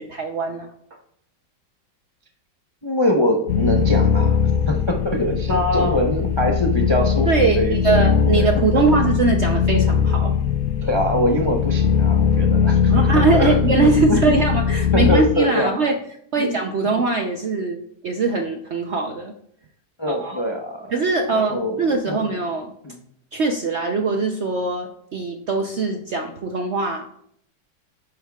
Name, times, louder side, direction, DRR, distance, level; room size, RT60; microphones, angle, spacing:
voice 1, 0.1-0.7 5.5-6.0 7.3-10.3 12.9-16.0 16.3-19.3 20.1-20.5 20.9-22.7 23.3-27.1, right 3 dB, 60° right, 4 dB, 0.7 m, -21 dB
voice 2, 2.8-4.4 4.7-8.5 10.8-13.1 13.3-14.2 14.9-15.7 16.4-16.5 20.0-20.9 21.3-21.8 22.1-22.2 22.8-23.0, left 1 dB, 35° left, 1 dB, 0.4 m, -23 dB
sound 1, 3.5-15.2, left 7 dB, 65° left, 1.0 m, -20 dB
10.5 x 8.9 x 2.3 m, 0.69 s
omnidirectional pair, 1.9 m